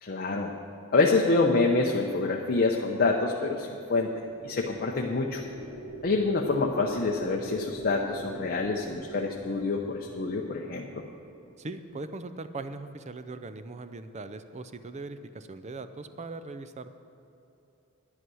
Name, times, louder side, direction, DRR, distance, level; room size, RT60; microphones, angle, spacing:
voice 1, 0.0-0.5 0.9-4.1 4.4-5.4 6.0-11.0, left 3 dB, 45° left, 0 dB, 0.7 m, -26 dB
sound 1, 3.7-12.1, right 1 dB, 75° right, 1.8 m, -43 dB
voice 2, 11.6-16.9, right 3 dB, 30° right, 11 dB, 0.5 m, -40 dB
11.0 x 9.7 x 6.2 m, 2.8 s
head